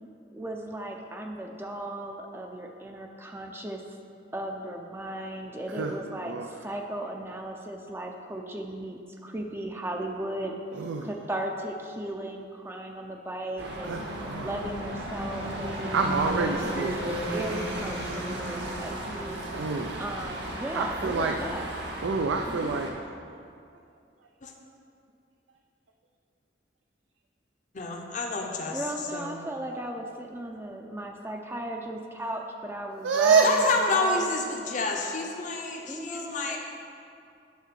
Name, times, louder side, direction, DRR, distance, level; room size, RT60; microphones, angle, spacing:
voice 1, 0.3-3.8 4.3-10.6 11.0-14.0 14.4-16.0 16.4-16.9 17.3-19.4 20.0-21.7 22.5-22.8 28.7-34.3 35.9-36.6, right 1 dB, 15° right, 2 dB, 0.5 m, -36 dB
voice 2, 10.8-11.1 13.9-14.5 15.9-17.1 19.5-20.0 20.7-21.4 22.0-22.9 33.0-33.6, right 4 dB, 85° right, 3 dB, 0.4 m, -26 dB
sound 1, 13.6-22.9, right 1 dB, 65° right, 1.2 m, -34 dB
voice 3, 27.7-28.8 29.1-29.4 33.4-36.6, left 3 dB, 45° left, 1 dB, 0.7 m, -29 dB
9.3 x 3.7 x 6.7 m, 2.4 s
head